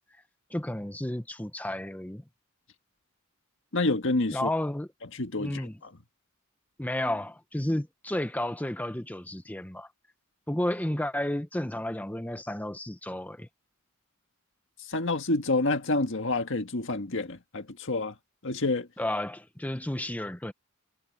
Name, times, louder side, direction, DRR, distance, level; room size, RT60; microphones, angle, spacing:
voice 1, 0.5-2.2 4.3-4.9 5.4-5.8 6.8-9.9 10.5-13.5 19.0-20.5, left 1 dB, 10° left, 0.8 m, -32 dB
voice 2, 3.7-4.5 5.1-5.6 14.9-18.1 18.4-18.9, left 2 dB, 65° left, 1.8 m, -28 dB
head